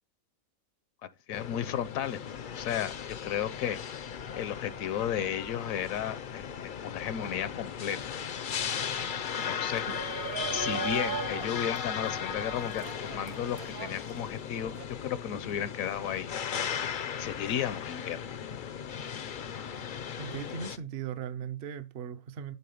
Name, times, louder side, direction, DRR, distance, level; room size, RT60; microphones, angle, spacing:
voice 1, 1.3-2.2 2.6-3.8 4.4-8.0 9.4-9.9 10.5-16.3 17.2-18.2, left 9 dB, 75° left, 1.0 m, -34 dB
sound 1, 1.3-20.8, left 7 dB, 55° left, 0.5 m, -37 dB
Shout, 9.7-14.8, right 8 dB, 85° right, 1.2 m, -39 dB
voice 2, 20.2-22.6, right 8 dB, 55° right, 0.7 m, -38 dB
8.5 x 3.7 x 6.9 m
omnidirectional pair, 1.5 m